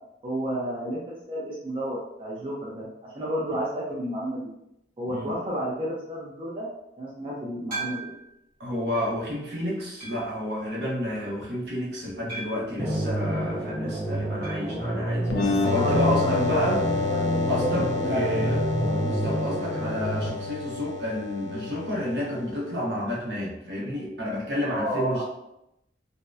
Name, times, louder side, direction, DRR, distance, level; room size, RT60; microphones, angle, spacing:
voice 1, 0.2-4.5 5.0-6.7 7.0-8.1 15.7-18.5 24.6-25.2, equal, 30° right, -5 dB, 0.4 m, -31 dB
sound 1, 7.7-8.4 9.0-9.1 10.0-10.4 12.3-12.8 14.4-14.7 15.0-15.1 15.3-15.4 17.4-17.5, right 3 dB, 55° right, 1.3 m, -37 dB
voice 2, 8.6-16.8 17.5-18.6 19.0-25.2, left 1 dB, 70° right, -4 dB, 0.8 m, -30 dB
sound 2, 12.8-20.3, right 1 dB, 10° left, 0.6 m, -29 dB
sound 3, 15.3-22.8, left 3 dB, 70° left, 0.4 m, -29 dB
2.7 x 2.0 x 2.3 m, 0.82 s
head